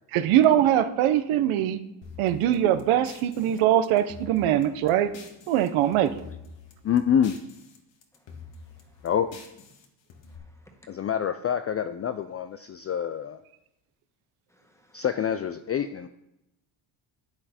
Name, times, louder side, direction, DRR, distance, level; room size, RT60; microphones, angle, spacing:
voice 1, 0.1-1.8 2.2-5.1 5.5-6.1, right 11 dB, 85° right, 0.9 m, -22 dB
sound 1, 2.0-5.7 5.9-7.8 8.0-10.4, left 5 dB, 65° left, 2.3 m, -47 dB
voice 2, 6.8-7.4 9.0-9.4 10.9-13.4 14.9-16.1, left 8 dB, 30° left, 0.4 m, -26 dB
voice 3, 10.3-11.1 14.5-15.1, equal, 5° left, 1.7 m, -60 dB
11.5 x 9.0 x 4.3 m
cardioid pair, 120°, 48 cm